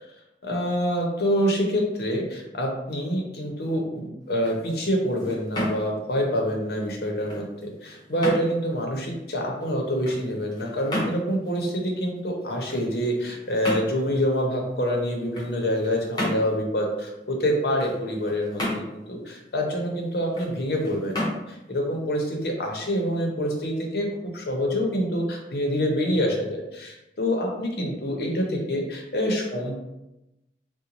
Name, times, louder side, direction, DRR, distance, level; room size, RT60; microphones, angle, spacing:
voice 1, 0.4-7.5 7.8-29.8, equal, 60° left, 0 dB, 0.7 m, -26 dB
sound 1, 4.2-23.1, left 1 dB, 25° left, 0.8 m, -35 dB
3.9 x 2.1 x 2.9 m, 0.93 s
head